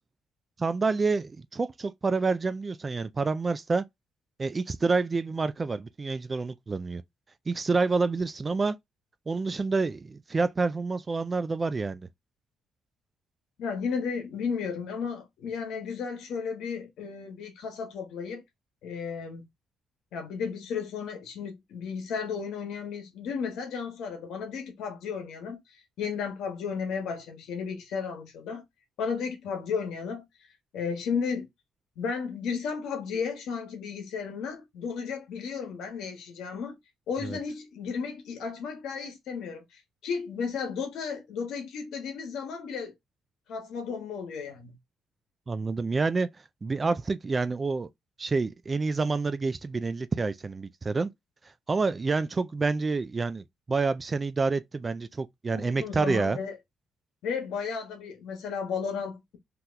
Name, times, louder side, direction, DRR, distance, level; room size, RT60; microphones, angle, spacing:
voice 1, 0.6-3.8 4.4-7.0 7.5-8.8 9.3-12.1 37.2-37.4 45.5-46.3 46.6-47.9 48.2-51.1 51.7-56.4, right 4 dB, 30° right, 0.3 m, -28 dB
voice 2, 13.6-18.4 18.8-19.5 20.1-25.6 26.0-28.6 29.0-30.3 30.7-31.5 32.0-36.8 37.1-42.9 43.5-44.7 55.5-56.5 57.2-59.4, left 6 dB, 80° left, 1.1 m, -34 dB
2.9 x 2.2 x 3.8 m
cardioid pair, 90°, 0 cm